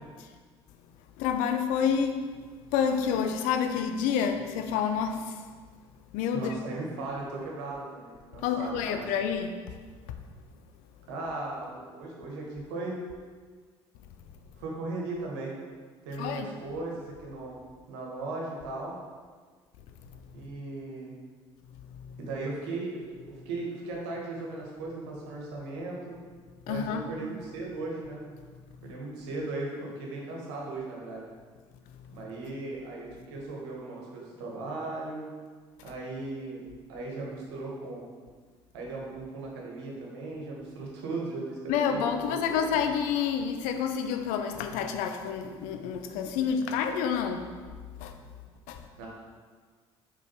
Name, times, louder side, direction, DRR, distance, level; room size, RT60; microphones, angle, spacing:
voice 1, 1.2-2.2 2.7-5.4 6.1-6.6 8.4-9.5 16.2-16.5 21.9-22.2 26.7-27.1 41.7-47.5 48.0-48.2 48.7-48.8, left 7 dB, 70° left, 7 dB, 0.6 m, -28 dB
voice 2, 6.3-9.0 11.1-12.9 14.6-15.5 16.0-17.6 17.9-18.9 20.3-21.1 22.2-26.2 26.7-28.2 28.8-31.2 32.1-35.3 35.8-36.6 36.9-38.1 38.7-42.4 42.7-42.9 49.0-49.1, right 2 dB, 75° right, -2 dB, 1.4 m, -37 dB
5.0 x 4.9 x 4.5 m, 1.5 s
hypercardioid pair, 55°, 14 cm